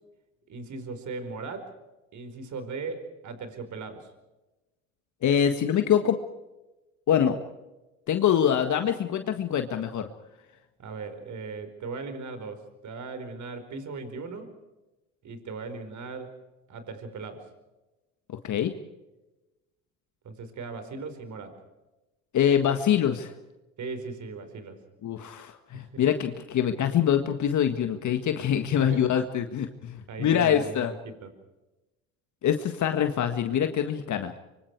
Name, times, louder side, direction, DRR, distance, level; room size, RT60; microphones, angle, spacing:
voice 1, 0.5-1.7 2.1-4.1 10.8-14.5 15.2-17.5 20.2-21.6 23.8-24.8 25.7-26.0 28.8-29.1 30.1-31.3, right 4 dB, 50° right, 9 dB, 4.9 m, -38 dB
voice 2, 5.2-6.2 7.1-7.4 8.1-10.1 18.3-18.7 22.3-23.3 25.0-30.9 32.4-34.3, left 9 dB, 50° left, 7 dB, 1.7 m, -24 dB
25.0 x 24.0 x 4.8 m, 1.0 s
hypercardioid pair, 75°, 38 cm